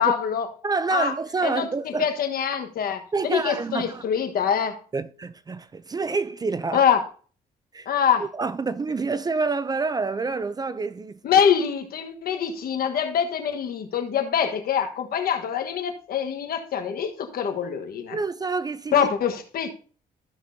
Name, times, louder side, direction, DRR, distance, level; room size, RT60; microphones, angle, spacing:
voice 1, 0.0-0.5 0.9-1.1 1.4-1.7 2.0-4.8 6.7-7.0 7.9-8.2 11.2-18.2 18.9-19.7, left 8 dB, 65° left, 1.3 m, -24 dB
voice 2, 0.6-2.1 3.1-4.0 4.9-6.8 7.7-7.9 8.2-11.2 18.1-19.1, right 4 dB, 25° right, 0.4 m, -27 dB
14.0 x 6.1 x 2.7 m
cardioid pair, 115°, 16 cm